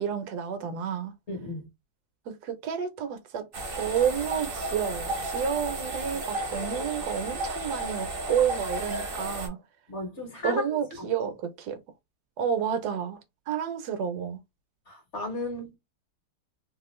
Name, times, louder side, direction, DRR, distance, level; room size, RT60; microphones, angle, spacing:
voice 1, 0.0-1.1 2.3-3.5 3.8-9.6 10.4-11.8 12.4-13.2 13.5-14.4, right 7 dB, 70° right, 1.1 m, -30 dB
voice 2, 1.3-1.7 9.9-10.7 11.0-11.1 14.9-15.8, left 1 dB, 50° left, 1.1 m, -34 dB
sound 1, 3.5-9.5, right 2 dB, 45° right, 0.7 m, -33 dB
2.9 x 2.4 x 3.0 m
omnidirectional pair, 1.9 m